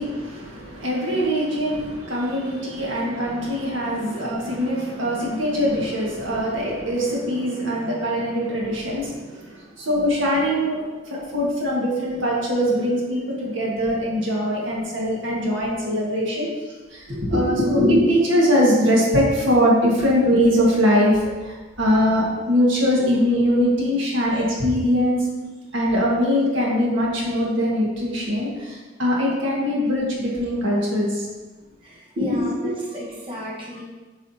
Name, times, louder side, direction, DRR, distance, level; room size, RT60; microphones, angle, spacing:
voice 1, 0.0-16.5 16.9-25.3 25.7-31.3 32.2-32.7, equal, 80° right, -4 dB, 1.7 m, -22 dB
voice 2, 31.8-33.8, left 1 dB, 30° right, -6 dB, 1.4 m, -35 dB
8.2 x 4.9 x 2.8 m, 1.3 s
head